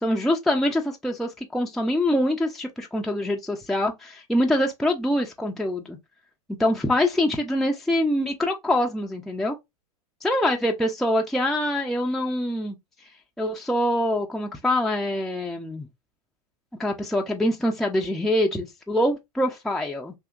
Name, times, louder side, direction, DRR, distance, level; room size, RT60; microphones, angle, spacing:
voice 1, 0.0-6.0 6.6-9.6 10.2-12.7 13.4-15.9 16.8-20.1, left 1 dB, ahead, 0.5 m, -24 dB
3.5 x 2.7 x 2.3 m
figure-of-eight pair, 95°, 20 cm